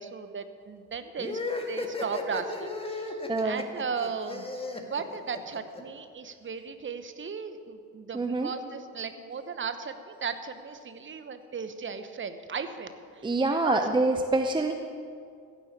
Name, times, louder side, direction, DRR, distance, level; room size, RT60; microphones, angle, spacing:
voice 1, 0.0-1.4 1.7-13.8, right 5 dB, 25° right, 10 dB, 1.1 m, -36 dB
sound 1, 1.2-5.8, left 3 dB, 10° left, 1.7 m, -35 dB
voice 2, 3.3-3.7 8.1-8.5 13.2-14.7, right 2 dB, 10° right, 5 dB, 0.7 m, -26 dB
15.5 x 7.3 x 8.3 m, 2.3 s
figure-of-eight pair, 60°, 45 cm